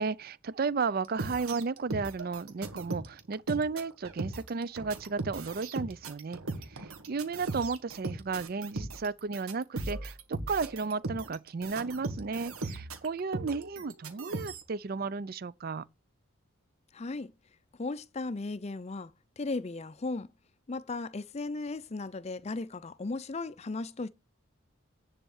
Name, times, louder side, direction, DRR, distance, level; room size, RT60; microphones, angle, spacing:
voice 1, 0.0-6.4 6.7-15.9, right 4 dB, 45° right, 0.4 m, -34 dB
sound 1, 1.0-14.6, right 2 dB, 85° right, 1.6 m, -38 dB
voice 2, 16.9-17.3 17.8-20.3 20.7-24.1, left 3 dB, 30° left, 0.4 m, -36 dB
10.5 x 4.2 x 7.1 m
head